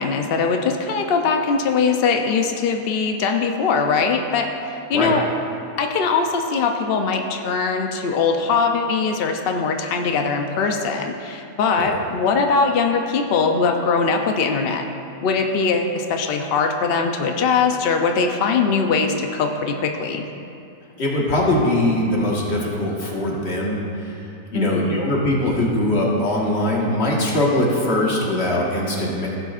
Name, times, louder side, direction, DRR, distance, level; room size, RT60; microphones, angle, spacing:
voice 1, 0.0-5.2 5.8-14.9 15.2-20.3 24.5-25.1, left 5 dB, 80° left, 4 dB, 0.5 m, -21 dB
voice 2, 21.0-24.1 24.5-29.3, left 1 dB, 40° left, -3 dB, 1.7 m, -21 dB
15.5 x 8.0 x 2.5 m, 2.6 s
omnidirectional pair, 1.7 m